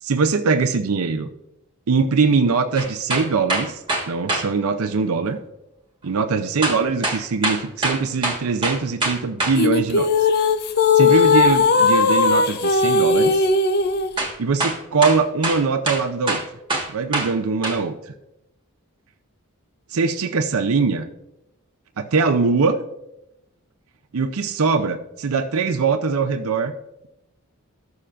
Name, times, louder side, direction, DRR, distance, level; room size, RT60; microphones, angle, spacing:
voice 1, 0.0-1.3 1.9-5.4 6.0-10.1 10.9-13.5 14.4-16.4 16.9-18.1 19.9-21.0 22.0-22.8 24.1-26.7, right 4 dB, 70° right, 8 dB, 0.5 m, -22 dB
sound 1, 2.8-4.5 6.6-9.6 14.2-14.3 14.6-17.3 17.6-17.8, right 2 dB, 20° right, 1.5 m, -24 dB
sound 2, 9.6-14.1, left 4 dB, 45° left, 0.5 m, -17 dB
14.0 x 6.9 x 2.5 m, 0.86 s
head